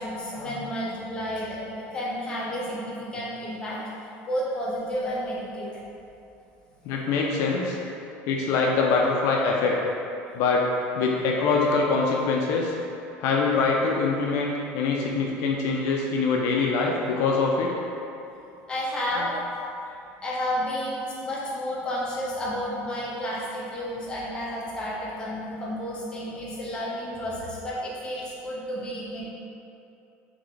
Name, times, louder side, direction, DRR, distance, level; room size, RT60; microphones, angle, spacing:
voice 1, 0.0-3.8 4.3-5.7 18.7-19.4 20.2-29.2, equal, 15° left, -6 dB, 0.8 m, -31 dB
voice 2, 6.8-7.8 8.3-9.8 10.3-10.7 11.0-12.7 13.2-17.7, left 4 dB, 65° left, -1 dB, 0.4 m, -24 dB
3.9 x 3.3 x 3.2 m, 2.8 s
cardioid pair, 150°, 5 cm